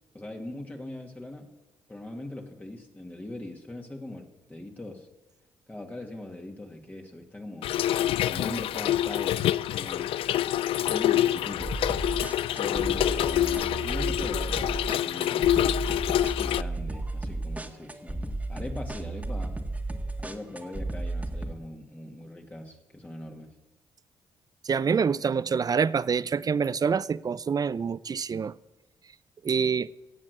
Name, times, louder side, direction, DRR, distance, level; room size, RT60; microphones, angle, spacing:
voice 1, 0.1-1.5 1.9-5.1 5.7-7.8 8.3-10.3 10.5-11.8 12.6-15.8 16.4-19.6 20.2-23.6, left 1 dB, 15° left, 2.1 m, -41 dB
Trickle dribble / Fill (with liquid), 7.6-16.6, left 12 dB, 75° left, 0.4 m, -26 dB
sound 1, 11.6-21.5, right 2 dB, 15° right, 1.8 m, -33 dB
voice 2, 24.7-28.5 29.4-29.9, right 6 dB, 40° right, 0.6 m, -26 dB
18.0 x 7.6 x 8.0 m
supercardioid pair, 55°, 10 cm